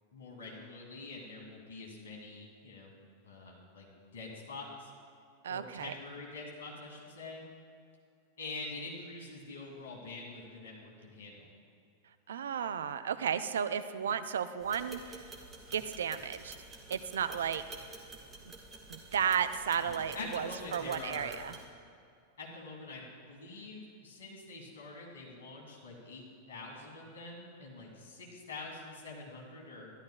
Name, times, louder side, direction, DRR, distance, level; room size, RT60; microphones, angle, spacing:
voice 1, 0.1-2.9 3.2-3.9 4.1-4.9 5.5-7.4 8.4-11.4 19.8-21.3 22.4-29.9, left 3 dB, 65° left, -2 dB, 2.3 m, -45 dB
voice 2, 5.4-5.9 12.3-15.2 15.7-16.5 16.9-17.6 18.9-21.6, right 8 dB, 65° right, 12 dB, 0.4 m, -33 dB
sound 1, 14.6-21.6, right 3 dB, 20° right, 1.4 m, -50 dB
13.0 x 11.5 x 2.3 m, 2.4 s
figure-of-eight pair, 90°, 0 cm